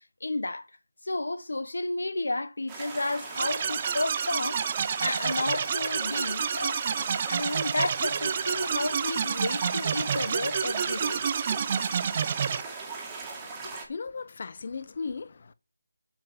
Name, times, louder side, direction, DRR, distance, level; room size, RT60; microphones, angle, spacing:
voice 1, 0.2-0.6 1.0-4.6 5.0-6.9 7.3-11.2, left 2 dB, 90° left, 1.1 m, -32 dB
sound 1, 2.7-13.9, right 4 dB, 10° right, 2.2 m, -39 dB
sound 2, 3.4-12.6, right 7 dB, 25° right, 0.5 m, -29 dB
voice 2, 13.6-15.5, left 4 dB, 40° left, 0.7 m, -37 dB
7.8 x 7.6 x 7.0 m
figure-of-eight pair, 170°, 0 cm